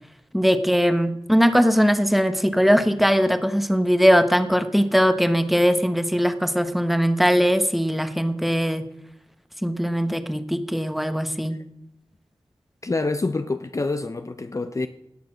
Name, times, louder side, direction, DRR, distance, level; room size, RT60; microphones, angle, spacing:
voice 1, 0.3-8.8 9.6-11.5, equal, ahead, 1.1 m, -20 dB
voice 2, 12.8-14.9, left 3 dB, 35° left, 0.6 m, -26 dB
18.0 x 6.8 x 6.2 m
wide cardioid pair, 70°, 10 cm